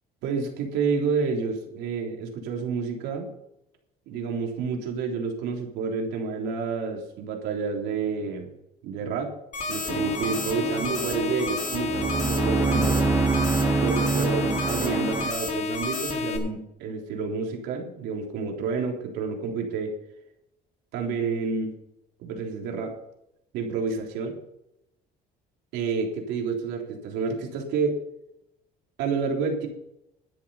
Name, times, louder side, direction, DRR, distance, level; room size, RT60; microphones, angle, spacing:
voice 1, 0.2-3.3 4.1-8.5 8.8-9.3 9.7-13.0 13.8-19.9 20.9-21.8 22.2-22.9 23.5-24.4 25.7-28.0 29.0-29.7, right 5 dB, 90° right, 1 dB, 3.6 m, -29 dB
sound 1, 9.5-16.4, left 3 dB, 45° left, 4.0 m, -30 dB
sound 2, 9.9-15.3, right 3 dB, 15° right, 1.1 m, -26 dB
12.5 x 11.0 x 5.5 m, 0.82 s
cardioid pair, 110°, 17 cm